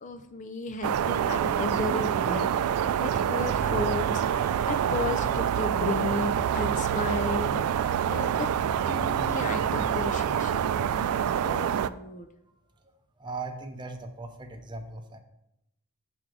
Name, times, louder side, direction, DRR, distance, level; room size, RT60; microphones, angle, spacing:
voice 1, 0.0-2.5 3.0-8.5 8.9-12.3, left 3 dB, 35° left, 7 dB, 0.4 m, -34 dB
sound 1, 0.8-11.9, right 9 dB, 85° right, 0.3 m, -26 dB
sound 2, 7.7-10.9, right 1 dB, 60° right, 0.8 m, -43 dB
voice 2, 13.2-15.2, right 3 dB, 20° right, 5 dB, 0.6 m, -38 dB
6.3 x 3.7 x 5.9 m, 0.82 s
head